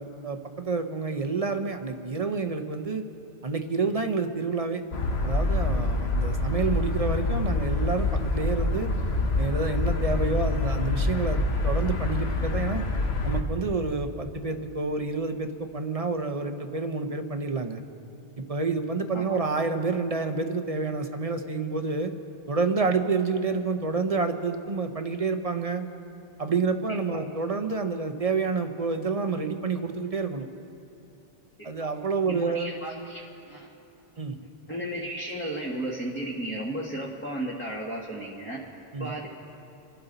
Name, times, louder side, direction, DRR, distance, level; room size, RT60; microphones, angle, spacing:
voice 1, 0.0-3.0 3.4-4.8 5.2-8.9 9.4-12.8 13.2-17.8 18.4-22.1 22.5-25.9 26.4-30.5 31.6-32.7 34.2-34.4 38.9-39.1, right 4 dB, 40° right, 7 dB, 0.8 m, -28 dB
sound 1, 4.9-13.4, left 2 dB, 80° left, 1.4 m, -26 dB
voice 2, 26.9-27.3 31.8-31.9 32.3-33.7 34.7-38.6 39.0-39.3, right 1 dB, 10° left, -5 dB, 1.5 m, -34 dB
28.0 x 12.0 x 4.0 m, 2.7 s
omnidirectional pair, 1.0 m